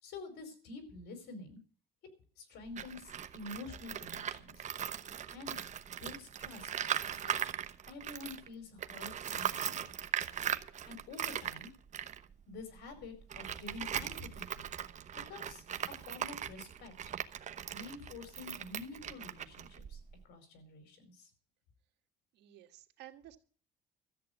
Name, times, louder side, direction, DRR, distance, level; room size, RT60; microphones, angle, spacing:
voice 1, 0.0-1.6 2.4-4.7 5.3-5.5 6.0-6.8 7.1-7.5 7.9-9.9 10.8-11.7 12.5-14.7 15.1-16.9 17.7-21.3, left 3 dB, 80° left, 8 dB, 4.9 m, -48 dB
Tools, 2.7-8.5 8.8-20.2, right 9 dB, 45° right, 1.0 m, -39 dB
voice 2, 22.4-23.4, right 13 dB, 85° right, 6 dB, 1.8 m, -53 dB
13.5 x 8.3 x 8.0 m, 0.41 s
cardioid pair, 110°, 17 cm